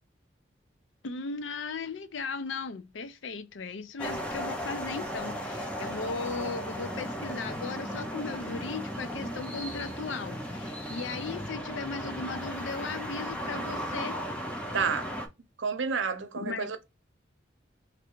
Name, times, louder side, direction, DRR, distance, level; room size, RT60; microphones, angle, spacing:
voice 1, 1.0-14.2 16.4-16.7, left 4 dB, 80° left, 0.5 m, -37 dB
sound 1, 4.0-15.3, equal, 5° left, 0.6 m, -36 dB
voice 2, 14.7-15.1 15.6-16.9, right 5 dB, 80° right, 0.7 m, -30 dB
3.3 x 2.6 x 4.5 m
head